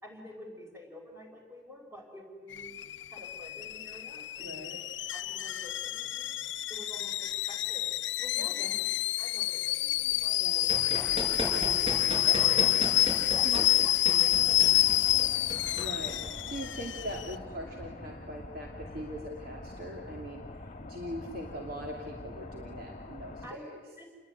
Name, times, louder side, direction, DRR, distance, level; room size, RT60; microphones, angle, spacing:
voice 1, 0.0-2.8 3.1-4.6 5.1-7.9 8.2-11.8 12.4-12.6 13.3-15.9 23.4-23.7 24.0-24.1, left 1 dB, 15° right, 2 dB, 5.5 m, -49 dB
Alarm / Boiling, 2.5-17.3, left 15 dB, 75° left, 0.8 m, -28 dB
voice 2, 4.4-4.8 8.4-8.8 10.4-11.3 12.3-12.7 13.1-13.7 15.7-16.2 16.5-23.8, equal, 55° right, 0 dB, 2.9 m, -42 dB
Run, 10.3-16.8, right 1 dB, 30° right, 7.7 m, -37 dB
sound 1, 14.3-23.5, left 2 dB, 35° left, 1.5 m, -45 dB
29.5 x 21.0 x 9.6 m, 1.4 s
head